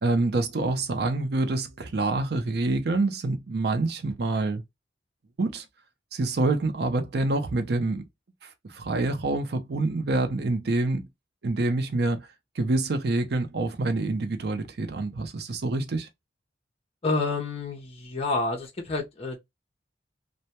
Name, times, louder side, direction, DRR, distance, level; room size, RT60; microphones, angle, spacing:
voice 1, 0.0-4.6 5.4-5.6 6.1-8.0 8.4-11.1 11.4-12.2 12.6-16.1, right 2 dB, 60° right, 0.5 m, -26 dB
voice 2, 17.0-19.4, left 3 dB, 30° left, 0.5 m, -29 dB
2.2 x 2.1 x 2.8 m
head